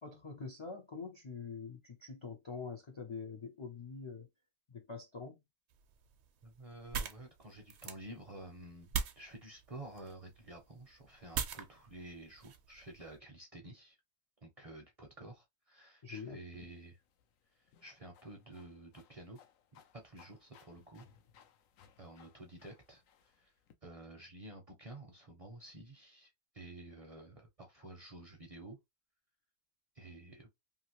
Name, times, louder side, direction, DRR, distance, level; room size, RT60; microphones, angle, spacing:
voice 1, 0.0-4.3 4.7-5.4 16.0-16.4, left 5 dB, 50° left, 0.3 m, -45 dB
sound 1, 5.7-13.2, right 7 dB, 65° right, 0.8 m, -43 dB
voice 2, 6.4-14.0 14.4-17.0 17.5-19.4 19.7-21.1 22.0-23.5 23.8-28.8 29.9-30.5, right 1 dB, 40° right, 0.5 m, -51 dB
sound 2, 16.5-23.7, left 8 dB, 90° left, 1.0 m, -65 dB
2.8 x 2.4 x 2.8 m
omnidirectional pair, 1.3 m